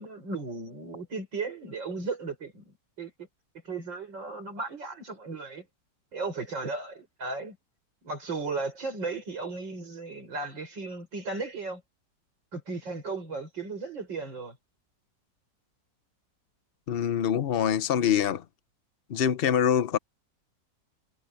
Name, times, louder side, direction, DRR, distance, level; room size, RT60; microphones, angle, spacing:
voice 1, 0.0-3.1 3.6-5.7 6.1-7.6 8.0-11.8 12.5-14.6, right 3 dB, 85° right, 6.7 m, -35 dB
voice 2, 16.9-18.4 19.1-20.0, left 9 dB, 50° left, 0.7 m, -25 dB
omnidirectional pair, 2.0 m